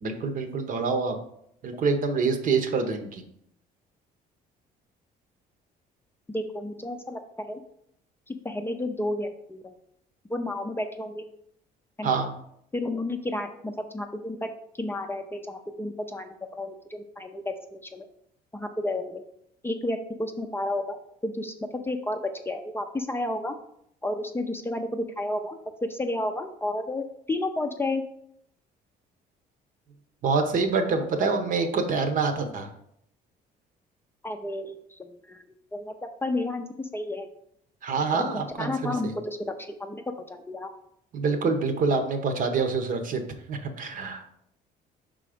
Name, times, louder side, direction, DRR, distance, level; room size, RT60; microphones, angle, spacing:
voice 1, 0.0-1.2 1.6-3.2 12.0-12.3 30.2-32.7 37.8-39.1 41.1-43.2 43.5-44.3, right 4 dB, 55° right, 6 dB, 0.9 m, -26 dB
voice 2, 6.3-7.6 8.3-9.7 10.3-11.2 12.0-12.1 12.7-14.5 14.8-18.0 18.5-19.2 19.6-21.0 21.2-23.6 24.0-28.0 34.2-35.4 35.7-37.3 38.3-39.5 39.8-40.7, left 1 dB, 15° left, 5 dB, 0.5 m, -31 dB
5.1 x 3.8 x 5.0 m, 0.72 s
cardioid pair, 110°, 17 cm